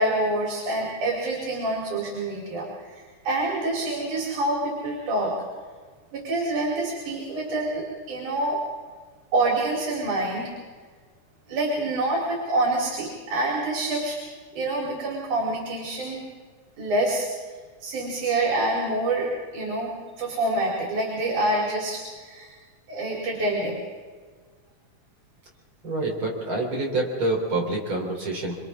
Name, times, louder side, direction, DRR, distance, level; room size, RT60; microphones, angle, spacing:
voice 1, 0.0-5.3 6.1-8.6 9.3-10.5 11.5-14.2 14.5-16.3 16.8-17.5 17.8-22.5 22.9-23.8, right 2 dB, 80° right, -3 dB, 5.0 m, -26 dB
voice 2, 25.8-28.6, right 2 dB, 40° right, 0 dB, 4.3 m, -27 dB
27.5 x 26.5 x 3.7 m, 1.5 s
omnidirectional pair, 3.5 m